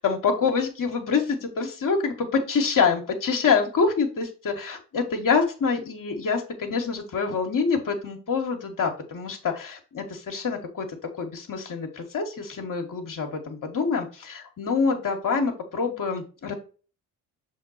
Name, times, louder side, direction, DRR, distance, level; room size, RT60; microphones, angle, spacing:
voice 1, 0.0-16.5, left 5 dB, 45° left, 2 dB, 1.6 m, -26 dB
6.5 x 3.7 x 4.1 m, 0.36 s
hypercardioid pair, 45°, 44 cm